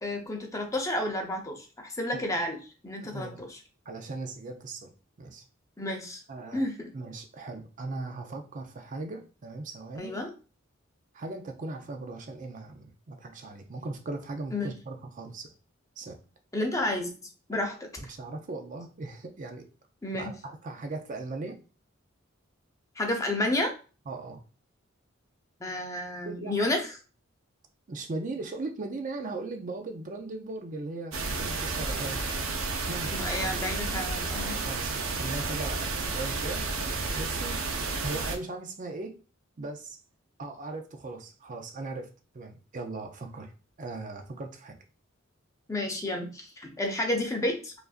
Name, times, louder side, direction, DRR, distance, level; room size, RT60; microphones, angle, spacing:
voice 1, 0.0-2.6 2.8-3.6 5.8-6.2 6.5-6.9 10.0-10.3 14.5-14.7 16.5-17.1 17.5-17.9 20.0-20.3 23.0-23.7 25.6-26.8 33.1-34.6 45.7-47.7, left 1 dB, 15° left, 3 dB, 0.6 m, -31 dB
voice 2, 3.0-3.4 3.9-4.9 5.2-5.4 6.3-6.6 6.9-10.2 11.1-15.5 16.0-16.2 18.1-19.6 20.1-21.6 24.1-24.4 26.2-26.5 27.9-32.3 32.9-33.5 34.3-36.7 37.2-37.6 38.0-39.2 39.6-40.0 40.4-42.1 42.3-43.5 43.8-44.8, right 2 dB, 40° right, 5 dB, 0.5 m, -38 dB
sound 1, 31.1-38.4, right 3 dB, 85° right, 0.7 m, -31 dB
4.9 x 2.5 x 2.4 m, 0.34 s
head